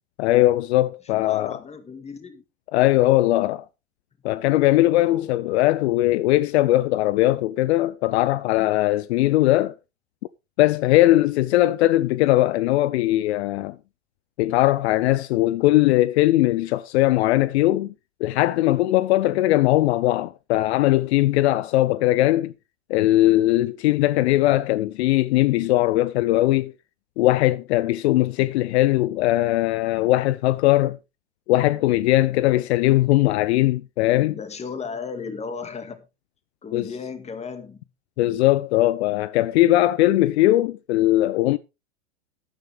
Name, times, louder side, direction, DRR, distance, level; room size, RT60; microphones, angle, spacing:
voice 1, 0.2-1.6 2.7-3.6 4.2-9.7 10.6-13.8 14.4-17.9 18.2-22.5 22.9-26.7 27.2-31.0 31.5-34.4 36.7-36.9 38.2-41.6, left 16 dB, 65° left, 0.6 m, -20 dB
voice 2, 1.0-2.4 5.0-5.4 34.3-36.1 36.6-37.9, left 5 dB, 20° left, 2.0 m, -35 dB
12.5 x 9.7 x 3.4 m
hypercardioid pair, 115°, 36 cm